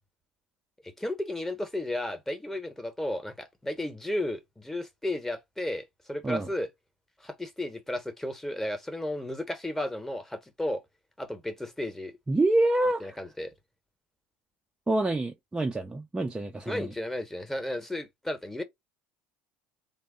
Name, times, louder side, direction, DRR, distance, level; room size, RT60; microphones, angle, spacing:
voice 1, 0.8-6.7 7.2-10.8 11.2-12.1 13.0-13.5 16.7-18.6, left 1 dB, 5° left, 0.9 m, -33 dB
voice 2, 12.3-13.2 14.9-16.9, right 2 dB, 15° right, 0.4 m, -27 dB
3.3 x 2.0 x 3.5 m
hypercardioid pair, 80°, 6 cm